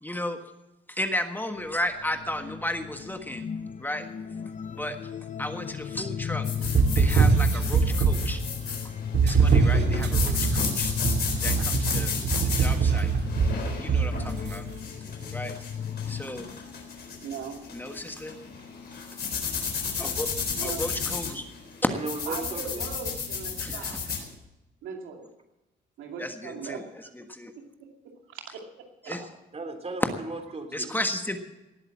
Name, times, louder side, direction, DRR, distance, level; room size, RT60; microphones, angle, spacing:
voice 1, 0.0-0.4 0.9-3.5 3.8-4.1 4.7-4.9 5.4-8.4 9.2-10.9 11.4-12.1 12.4-13.1 13.8-14.7 15.3-15.5 16.1-16.5 17.7-18.4 20.0-20.3 20.6-21.5 23.6-24.0 26.2-26.8 27.3-27.5 29.1-29.2 30.7-31.4, left 1 dB, 10° left, 6 dB, 1.5 m, -34 dB
sound 1, 1.6-16.2, left 8 dB, 40° left, 0.6 m, -35 dB
sound 2, 6.4-24.2, left 5 dB, 55° left, 4.0 m, -33 dB
sound 3, 6.6-8.4 9.1-14.6, right 5 dB, 60° right, 2.0 m, -23 dB
voice 2, 17.2-17.6 20.6-20.8 22.3-24.0 24.8-25.3 26.0-27.1 27.6-27.9 28.3-28.6 29.0-29.2, right 6 dB, 90° right, 2 dB, 2.6 m, -39 dB
voice 3, 21.8-22.8 29.5-30.9, right 3 dB, 30° right, 7 dB, 2.9 m, -36 dB
18.5 x 8.1 x 7.3 m, 0.97 s
cardioid pair, 90°, 20 cm